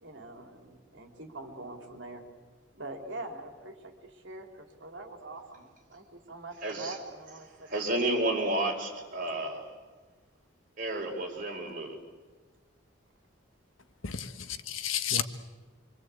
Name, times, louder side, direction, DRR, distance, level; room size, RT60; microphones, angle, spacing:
voice 1, 0.0-2.2 2.7-7.7, right 2 dB, 65° right, 3.4 m, -44 dB
voice 2, 6.6-6.9 7.7-9.7 10.8-12.0, right 1 dB, 45° right, 4.7 m, -31 dB
voice 3, 14.0-15.2, left 9 dB, 85° left, 1.3 m, -32 dB
26.5 x 24.5 x 8.3 m
head